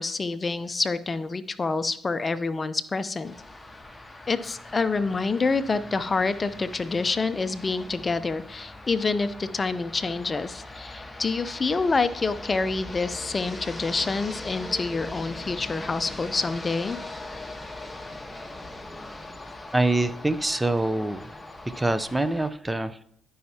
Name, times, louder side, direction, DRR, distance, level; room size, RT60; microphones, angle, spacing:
voice 1, 0.0-3.3 4.3-17.0, left 4 dB, 35° left, 13 dB, 0.6 m, -27 dB
sound 1, 3.2-22.5, left 2 dB, 15° left, 1.2 m, -41 dB
voice 2, 19.7-21.3 21.7-23.0, right 2 dB, 15° right, 13 dB, 0.6 m, -25 dB
13.5 x 5.6 x 2.9 m, 0.66 s
hypercardioid pair, 55°, 0 cm